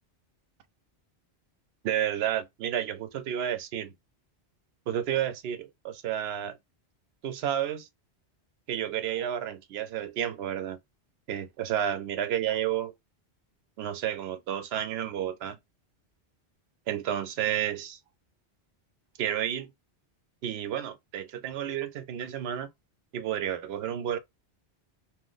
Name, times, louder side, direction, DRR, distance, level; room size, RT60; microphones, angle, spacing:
voice 1, 1.8-3.9 4.9-6.6 7.2-7.9 8.7-10.8 11.3-12.9 13.8-15.6 16.9-18.0 19.2-19.7 20.4-22.7 23.1-24.2, right 10 dB, 70° right, 0.8 m, -31 dB
2.8 x 2.0 x 3.8 m
omnidirectional pair, 1.1 m